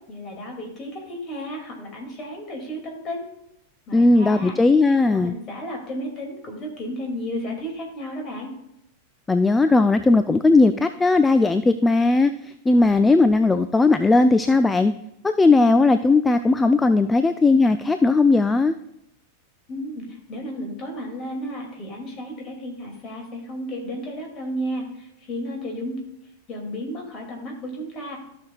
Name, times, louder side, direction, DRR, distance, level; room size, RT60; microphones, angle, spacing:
voice 1, 0.1-3.3 3.9-4.5 5.1-8.5 19.7-26.0 26.5-28.2, equal, 30° left, 1 dB, 2.5 m, -33 dB
voice 2, 3.9-5.3 9.3-14.9 15.2-18.8, left 3 dB, 10° left, 10 dB, 0.3 m, -17 dB
14.0 x 6.2 x 2.4 m, 0.82 s
figure-of-eight pair, 90°, 0 cm